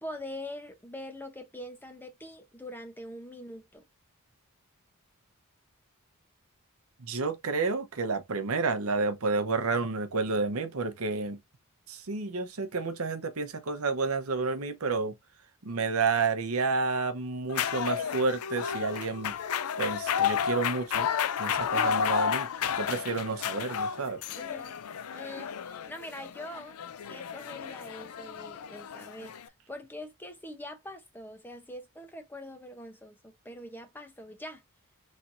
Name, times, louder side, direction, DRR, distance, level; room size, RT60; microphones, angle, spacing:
voice 1, 0.0-3.8 21.7-22.1 24.4-24.8 25.1-26.8 27.1-34.6, left 1 dB, 10° left, 0.7 m, -43 dB
voice 2, 7.0-11.4 11.9-15.1 15.6-19.3 19.8-21.1 21.4-22.5 22.8-24.2, right 4 dB, 70° right, 0.8 m, -30 dB
sound 1, 17.5-29.5, left 7 dB, 80° left, 0.4 m, -32 dB
4.2 x 3.3 x 2.6 m
head